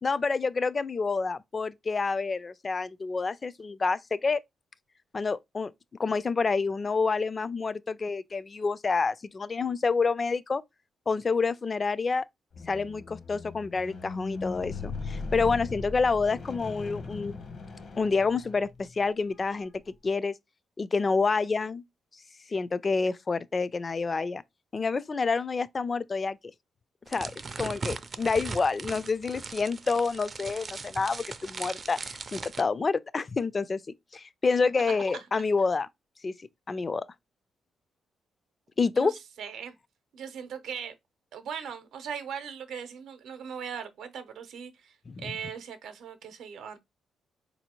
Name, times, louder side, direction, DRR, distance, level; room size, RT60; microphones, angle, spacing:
voice 1, 0.0-4.4 5.1-5.7 6.0-10.6 11.1-12.2 12.7-17.4 18.0-20.3 20.8-21.8 22.5-24.4 24.7-26.4 27.1-27.3 27.6-33.8 34.1-35.9 36.2-36.3 36.7-37.0 38.8-39.1 45.1-45.3, left 4 dB, 40° left, 0.3 m, -28 dB
Squeak, 12.5-18.9 19.6-19.8, left 3 dB, 55° left, 0.8 m, -38 dB
sound 1, 27.1-32.6, right 4 dB, 40° right, 0.4 m, -39 dB
voice 2, 34.9-35.2 38.9-39.7 40.1-40.9 41.3-46.8, right 7 dB, 80° right, 0.7 m, -39 dB
4.0 x 2.7 x 2.9 m
cardioid pair, 65°, 0 cm